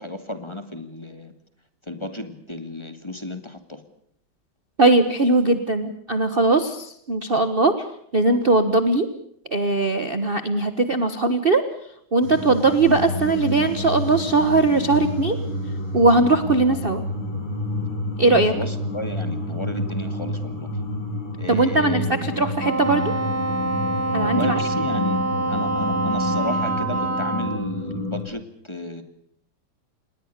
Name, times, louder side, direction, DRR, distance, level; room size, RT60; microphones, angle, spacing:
voice 1, 0.0-1.3 1.9-3.8 18.3-20.7 21.4-22.4 24.2-25.2 25.5-29.0, left 1 dB, 15° left, 8 dB, 2.1 m, -33 dB
voice 2, 4.8-7.9 8.1-9.1 9.5-11.6 12.1-15.4 15.9-17.0 18.2-18.5 21.5-23.1 24.1-24.6, right 3 dB, 30° right, 9 dB, 1.3 m, -20 dB
sound 1, 12.2-28.2, left 1 dB, 80° left, 7.3 m, -29 dB
Wind instrument woodwind instrument, 22.6-27.6, right 2 dB, 10° right, 1.9 m, -26 dB
27.5 x 20.5 x 6.7 m, 0.70 s
omnidirectional pair, 2.1 m